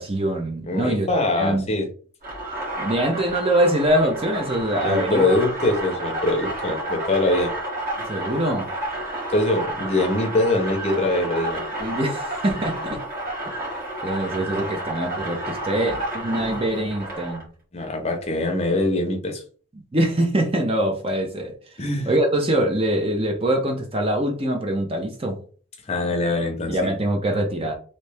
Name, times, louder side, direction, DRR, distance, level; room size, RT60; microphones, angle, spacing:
voice 1, 0.0-1.1 1.4-1.7 2.8-5.2 8.0-8.7 11.8-13.0 14.0-17.4 19.9-21.6 22.1-25.4 26.7-27.7, right 1 dB, 25° right, 2 dB, 0.6 m, -23 dB
voice 2, 0.7-1.9 4.8-7.5 9.3-11.6 17.7-19.4 21.8-22.1 25.9-26.8, left 2 dB, 30° left, 3 dB, 0.7 m, -23 dB
sound 1, 2.2-17.4, right 1 dB, 40° right, 1.8 m, -31 dB
3.2 x 2.7 x 3.3 m, 0.42 s
head